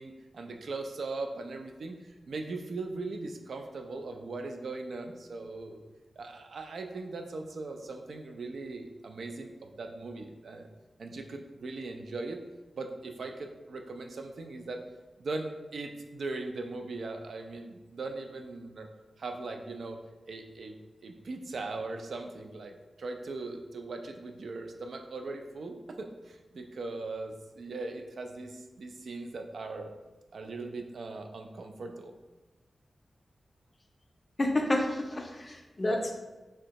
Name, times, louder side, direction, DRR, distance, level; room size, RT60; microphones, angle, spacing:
voice 1, 0.0-5.8 6.2-10.7 11.0-12.4 12.7-14.8 15.2-18.9 19.2-20.0 20.3-20.7 21.0-29.9 30.3-32.1, right 3 dB, 75° right, 4 dB, 0.3 m, -39 dB
voice 2, 34.4-36.1, left 1 dB, 25° left, 2 dB, 0.4 m, -29 dB
3.2 x 2.7 x 2.9 m, 1.1 s
wide cardioid pair, 160°, 0 cm